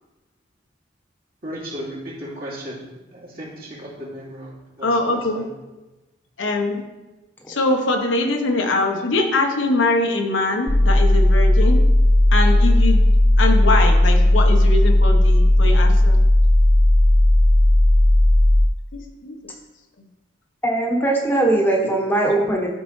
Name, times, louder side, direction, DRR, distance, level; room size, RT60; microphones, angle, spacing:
voice 1, 1.4-4.9 5.3-5.5, equal, 55° right, -6 dB, 2.6 m, -35 dB
voice 2, 4.8-5.4 6.4-6.9 7.5-11.8 12.3-13.0 13.4-16.2 19.2-19.4 21.8-21.9, left 2 dB, 80° left, 3 dB, 1.0 m, -22 dB
sound 1, 10.7-18.7, left 1 dB, 35° left, 0.5 m, -15 dB
voice 3, 20.6-22.7, right 2 dB, 10° left, 0 dB, 1.1 m, -20 dB
12.5 x 4.6 x 3.2 m, 1.1 s
head